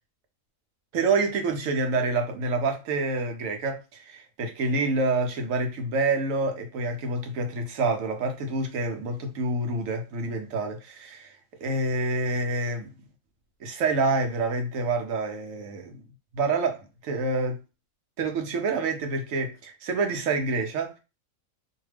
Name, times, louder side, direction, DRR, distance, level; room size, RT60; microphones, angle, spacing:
voice 1, 0.9-11.4 11.6-12.9 13.6-16.0 16.3-17.6 18.2-21.0, right 3 dB, 75° right, 1.0 m, -27 dB
2.6 x 2.2 x 3.2 m
omnidirectional pair, 1.4 m